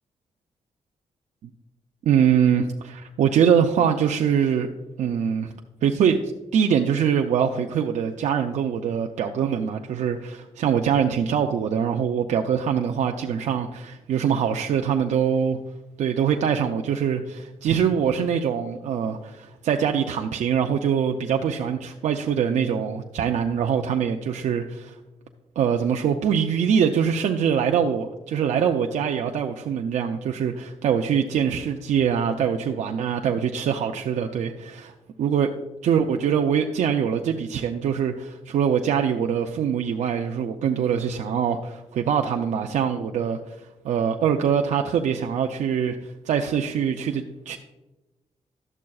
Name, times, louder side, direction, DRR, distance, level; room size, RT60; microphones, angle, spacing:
voice 1, 2.0-4.7 5.0-5.5 5.8-6.2 6.5-15.6 16.0-25.0 25.6-34.9 35.2-35.5 35.8-46.0 46.2-47.6, right 8 dB, 80° right, 3 dB, 0.5 m, -23 dB
12.0 x 7.4 x 2.3 m, 1.1 s
wide cardioid pair, 160°, 12 cm